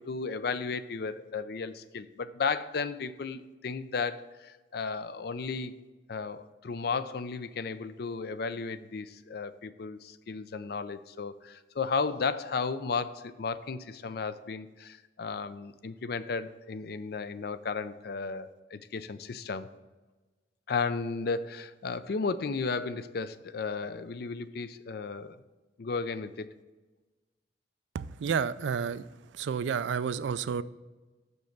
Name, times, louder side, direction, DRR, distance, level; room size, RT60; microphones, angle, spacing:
voice 1, 0.0-5.7 6.1-19.7 20.7-25.4 25.8-26.5, left 4 dB, 60° left, 13 dB, 0.4 m, -34 dB
voice 2, 27.9-29.0 29.4-30.6, right 6 dB, 80° right, 16 dB, 0.3 m, -30 dB
6.5 x 5.3 x 5.8 m, 1.2 s
head